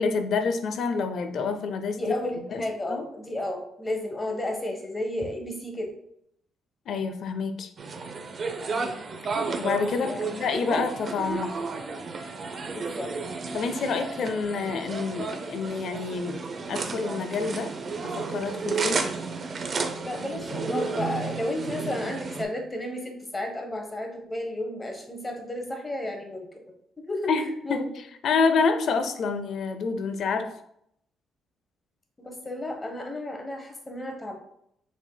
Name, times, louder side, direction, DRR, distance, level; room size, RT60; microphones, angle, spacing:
voice 1, 0.0-2.6 2.9-3.0 6.9-7.7 9.6-11.5 13.5-17.7 18.0-19.1 27.3-27.8 28.2-30.5, left 4 dB, 65° left, 8 dB, 0.5 m, -28 dB
voice 2, 2.0-5.9 8.7-8.9 10.0-10.3 12.6-13.1 20.0-26.6 27.0-27.3 27.6-27.9 32.2-34.4, left 1 dB, 20° left, 3 dB, 1.0 m, -33 dB
sound 1, 7.8-22.4, right 4 dB, 45° right, 0.6 m, -32 dB
sound 2, 10.2-15.7, right 2 dB, 30° right, 1.2 m, -45 dB
6.2 x 3.6 x 2.3 m, 0.74 s
cardioid pair, 90°, 0 cm